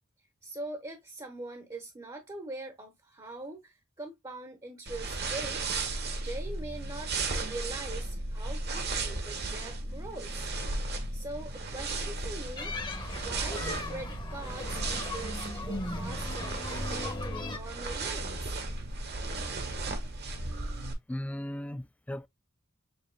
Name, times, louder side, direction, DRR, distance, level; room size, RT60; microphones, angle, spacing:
voice 1, 0.4-5.8 6.2-10.5 11.1-12.7 13.1-18.6, right 2 dB, 20° right, 0.9 m, -42 dB
sound 1, 4.9-20.9, right 3 dB, 55° right, 1.2 m, -35 dB
sound 2, 12.6-17.6, left 2 dB, 25° left, 1.0 m, -38 dB
voice 2, 21.1-22.3, left 1 dB, 5° left, 0.3 m, -36 dB
7.4 x 2.9 x 2.2 m
head